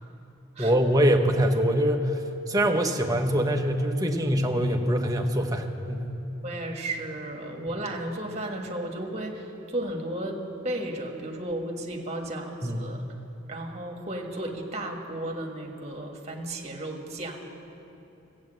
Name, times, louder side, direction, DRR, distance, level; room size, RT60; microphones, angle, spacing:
voice 1, 0.6-2.2 2.5-6.1 12.6-12.8, equal, 20° right, 3 dB, 0.8 m, -24 dB
voice 2, 6.4-13.0 13.5-17.4, right 1 dB, 35° right, 2 dB, 1.4 m, -34 dB
14.0 x 8.3 x 7.7 m, 2.9 s
head